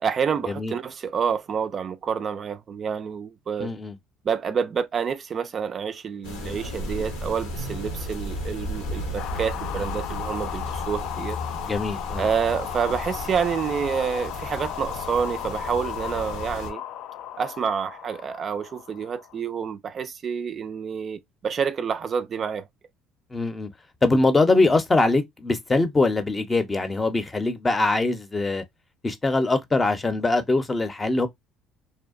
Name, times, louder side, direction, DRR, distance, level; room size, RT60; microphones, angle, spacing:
voice 1, 0.0-3.7 4.2-11.4 12.2-16.8 17.4-22.7, right 7 dB, 45° right, 0.3 m, -28 dB
voice 2, 3.6-3.9 11.6-12.3 23.3-23.7 24.0-28.6 29.0-31.3, left 2 dB, 20° left, 0.6 m, -22 dB
sound 1, 6.2-16.7, left 1 dB, 90° left, 0.9 m, -34 dB
sound 2, 9.2-19.4, left 11 dB, 70° left, 0.3 m, -35 dB
2.7 x 2.2 x 2.4 m
supercardioid pair, 80°, 0 cm